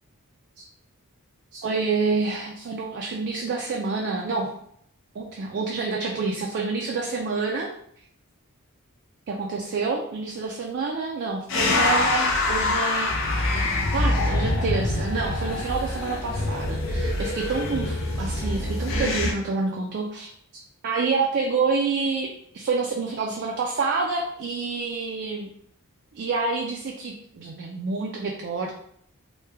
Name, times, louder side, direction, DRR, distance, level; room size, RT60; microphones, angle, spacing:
voice 1, 1.5-4.5 5.2-7.7 9.3-13.1 13.9-20.3 20.8-22.3 22.5-25.5 26.1-28.7, right 4 dB, 50° right, 0 dB, 0.4 m, -28 dB
sound 1, 11.5-19.3, left 2 dB, 60° left, 0.6 m, -25 dB
3.2 x 2.2 x 3.3 m, 0.68 s
head